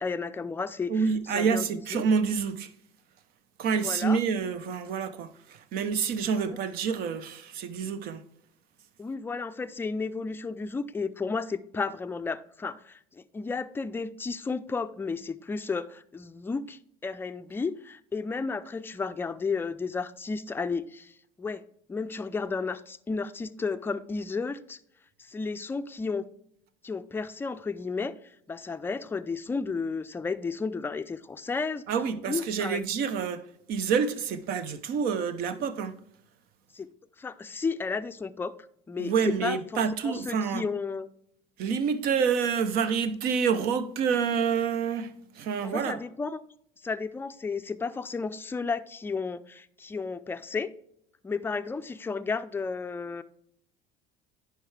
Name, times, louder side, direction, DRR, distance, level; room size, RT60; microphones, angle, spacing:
voice 1, 0.0-1.7 1.9-2.1 3.8-4.2 6.3-6.6 9.0-21.1 21.4-21.6 21.9-24.8 25.2-26.2 26.8-28.1 28.5-31.9 32.3-32.8 36.7-36.9 37.2-38.5 38.9-39.1 39.4-41.1 45.6-46.4 46.8-50.7 51.2-53.2, left 4 dB, 15° left, 0.4 m, -33 dB
voice 2, 0.9-2.7 3.6-8.2 31.9-36.0 39.0-40.6 41.6-46.0, right 6 dB, 65° right, 0.8 m, -28 dB
10.5 x 4.6 x 3.3 m
supercardioid pair, 95°, 16 cm